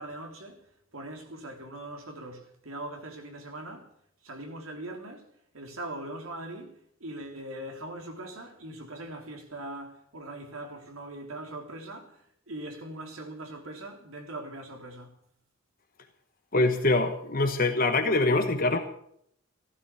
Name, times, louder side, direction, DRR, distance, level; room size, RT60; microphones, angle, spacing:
voice 1, 0.0-3.9 4.2-5.3 5.5-15.2, right 1 dB, 90° right, 3.6 m, -41 dB
voice 2, 16.5-18.8, left 2 dB, 45° left, 1.2 m, -24 dB
16.0 x 12.5 x 7.1 m
head